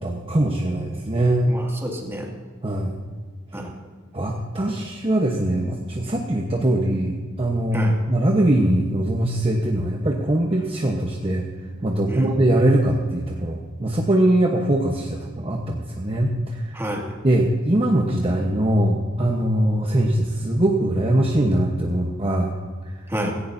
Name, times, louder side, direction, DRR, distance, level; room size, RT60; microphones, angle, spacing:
voice 1, 0.0-1.5 2.6-3.0 4.1-11.5 11.8-16.8 17.2-22.5 22.9-23.0, right 1 dB, 30° right, 0 dB, 1.1 m, -22 dB
voice 2, 1.5-2.3 3.5-3.7 7.7-8.0 12.1-12.3 16.7-17.0 23.1-23.3, equal, 15° right, -1 dB, 2.2 m, -29 dB
17.0 x 15.5 x 2.7 m, 1.5 s
head